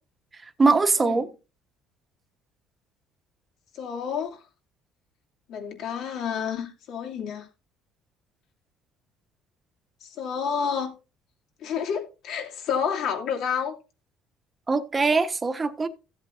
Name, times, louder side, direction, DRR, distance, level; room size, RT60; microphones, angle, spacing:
voice 1, 0.6-1.3 14.7-15.9, right 4 dB, 20° right, 1.1 m, -22 dB
voice 2, 3.7-4.4 5.5-7.5 10.0-10.9 11.6-13.8, left 7 dB, 65° left, 2.6 m, -29 dB
15.5 x 7.9 x 2.6 m
cardioid pair, 130°, 0 cm